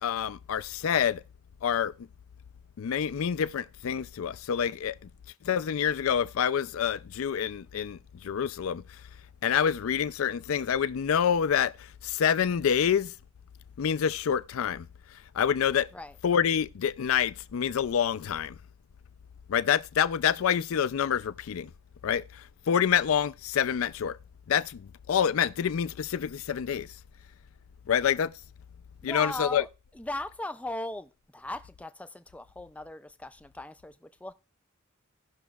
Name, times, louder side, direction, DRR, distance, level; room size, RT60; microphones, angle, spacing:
voice 1, 0.0-1.2 1.6-2.1 2.8-5.0 5.4-8.8 9.4-13.1 13.8-14.9 15.3-15.9 16.2-18.6 19.5-21.7 22.0-24.2 24.5-26.9 27.9-28.3 29.0-29.6, left 8 dB, 75° left, 0.4 m, -27 dB
voice 2, 29.0-29.7 29.9-34.3, left 1 dB, 5° left, 0.3 m, -38 dB
18.0 x 6.1 x 2.3 m
head